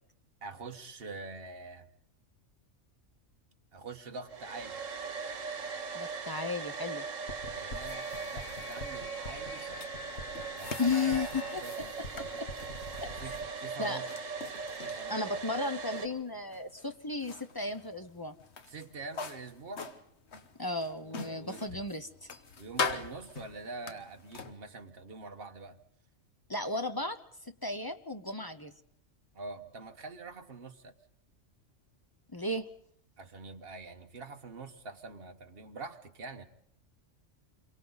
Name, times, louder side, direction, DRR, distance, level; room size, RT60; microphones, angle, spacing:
voice 1, 0.4-1.9 3.7-4.8 7.5-9.9 10.5-12.2 13.1-14.1 14.8-15.4 18.7-19.9 21.0-21.8 22.6-25.8 29.3-30.9 33.2-36.4, right 3 dB, 50° right, 5 dB, 1.5 m, -45 dB
Domestic sounds home sounds, 4.3-16.1, right 5 dB, 85° right, 1.8 m, -40 dB
voice 2, 5.9-7.1 10.8-11.6 12.4-12.5 13.0-13.1 13.8-14.0 15.1-18.3 20.6-22.3 26.5-28.7 32.3-32.7, left 3 dB, 20° left, 8 dB, 0.7 m, -34 dB
sound 1, 7.3-13.4, left 3 dB, 80° left, 1.9 m, -45 dB
sound 2, 7.3-24.5, left 5 dB, 60° left, 1.4 m, -43 dB
27.5 x 23.5 x 4.0 m, 0.72 s
omnidirectional pair, 1.3 m